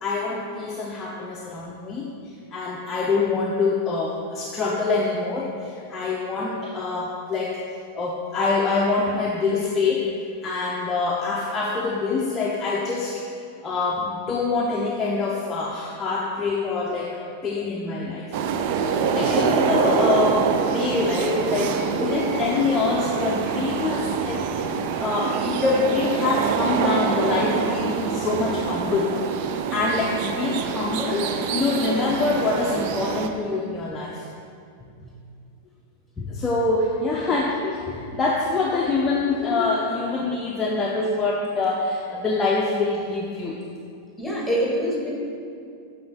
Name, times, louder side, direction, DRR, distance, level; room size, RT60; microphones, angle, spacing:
voice 1, 0.0-7.6 7.9-10.1 10.4-13.2 13.6-18.3 18.8-34.3 34.8-35.2 36.2-43.6, left 3 dB, 20° left, -3 dB, 0.6 m, -25 dB
sound 1, 18.3-33.3, right 6 dB, 45° right, 0.4 m, -25 dB
voice 2, 21.8-22.2 37.1-37.4 44.2-45.1, equal, ahead, -3 dB, 1.6 m, -26 dB
7.6 x 4.2 x 4.1 m, 2.4 s
figure-of-eight pair, 90°, 0 cm